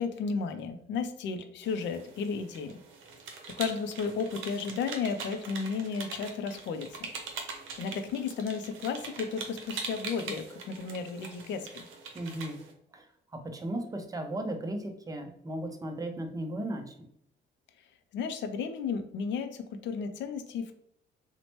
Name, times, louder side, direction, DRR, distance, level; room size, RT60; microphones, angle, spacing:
voice 1, 0.0-2.8 3.6-6.9 7.8-11.9 18.1-20.8, left 5 dB, 65° left, 8 dB, 0.4 m, -33 dB
sound 1, 1.6-12.7, right 4 dB, 80° right, 0.6 m, -43 dB
voice 2, 12.1-12.6 12.9-13.0 13.3-17.1, right 1 dB, 20° right, 5 dB, 0.5 m, -36 dB
2.9 x 2.1 x 2.9 m, 0.72 s
cardioid pair, 90°, 20 cm